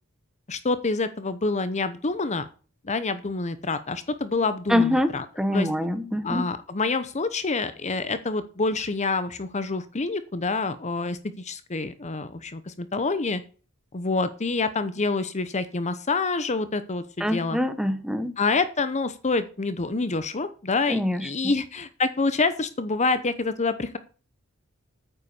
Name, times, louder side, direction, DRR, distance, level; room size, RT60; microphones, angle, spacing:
voice 1, 0.5-2.5 2.8-5.2 5.5-5.7 6.2-13.4 13.9-17.6 18.4-24.0, left 3 dB, 35° left, 12 dB, 0.8 m, -27 dB
voice 2, 4.7-6.5 17.2-18.3 20.9-21.5, left 1 dB, 5° right, 10 dB, 1.2 m, -25 dB
9.4 x 8.3 x 6.9 m, 0.37 s
head